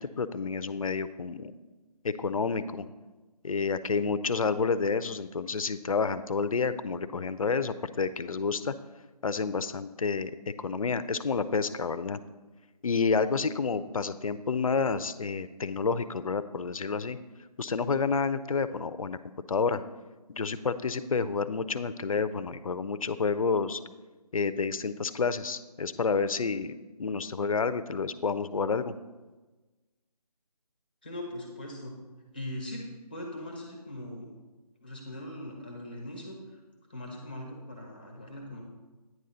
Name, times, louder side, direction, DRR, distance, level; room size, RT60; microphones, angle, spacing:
voice 1, 0.0-1.5 2.0-2.9 3.4-8.7 9.2-12.2 12.8-17.2 17.6-19.2 19.5-19.8 20.3-23.8 24.3-26.7 27.0-28.9, left 5 dB, 60° left, 13 dB, 0.4 m, -29 dB
voice 2, 31.0-31.9 32.3-32.8 33.1-34.3 34.8-36.4 36.9-38.6, left 1 dB, 15° left, 1 dB, 0.6 m, -40 dB
9.2 x 3.8 x 5.4 m, 1.2 s
figure-of-eight pair, 170°, 21 cm